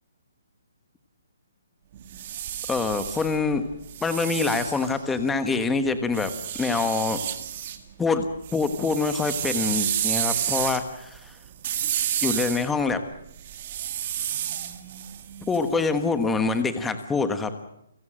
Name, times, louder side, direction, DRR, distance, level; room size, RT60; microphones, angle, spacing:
sound 1, 1.9-5.5 6.1-7.8 8.1-16.1, right 11 dB, 35° right, 1.9 m, -31 dB
voice 1, 2.7-3.6 4.0-6.3 6.6-7.2 8.0-8.2 8.5-11.3 12.2-13.0 15.5-17.5, left 4 dB, 5° left, 9 dB, 1.3 m, -25 dB
29.5 x 17.0 x 7.6 m, 0.80 s
hypercardioid pair, 170°, 0 cm